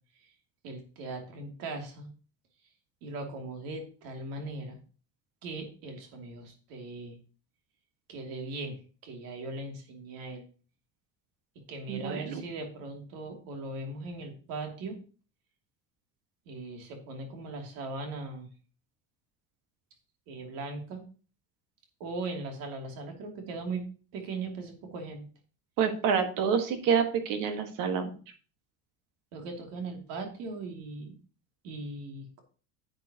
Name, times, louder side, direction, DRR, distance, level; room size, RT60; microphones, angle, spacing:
voice 1, 0.6-2.1 3.0-4.8 5.4-7.2 8.1-10.4 11.7-15.0 16.5-18.5 20.3-21.0 22.0-23.8 24.1-25.3 29.3-31.1 31.6-32.3, right 3 dB, 85° right, 3 dB, 2.8 m, -39 dB
voice 2, 11.9-12.4 25.8-28.1, right 7 dB, 70° right, 7 dB, 1.7 m, -27 dB
10.5 x 7.7 x 2.9 m, 0.38 s
cardioid pair, 140°, 33 cm